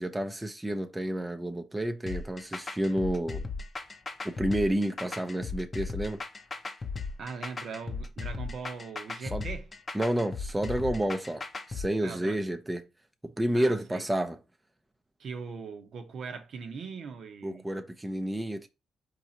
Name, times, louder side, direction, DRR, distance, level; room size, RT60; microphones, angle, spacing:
voice 1, 0.0-3.4 4.2-6.2 9.2-9.4 9.9-12.9 13.2-14.4 17.4-18.7, right 1 dB, 10° right, 0.5 m, -30 dB
sound 1, 2.1-11.9, left 4 dB, 30° left, 0.7 m, -37 dB
voice 2, 7.2-9.7 12.0-12.4 13.5-14.0 15.2-17.6, right 5 dB, 60° right, 0.8 m, -40 dB
4.7 x 2.6 x 4.2 m
cardioid pair, 90°, 0 cm